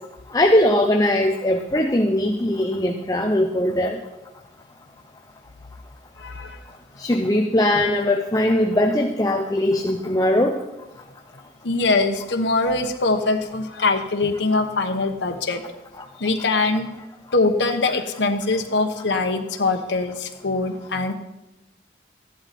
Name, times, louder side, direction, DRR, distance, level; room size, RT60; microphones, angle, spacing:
voice 1, 0.3-4.0 7.0-10.6 16.0-16.1, left 1 dB, 20° left, 4 dB, 0.7 m, -20 dB
voice 2, 6.2-6.6 9.7-9.8 11.6-15.6 16.2-16.9 17.3-21.1, left 3 dB, 85° left, 5 dB, 1.1 m, -22 dB
14.0 x 11.0 x 4.3 m, 0.95 s
head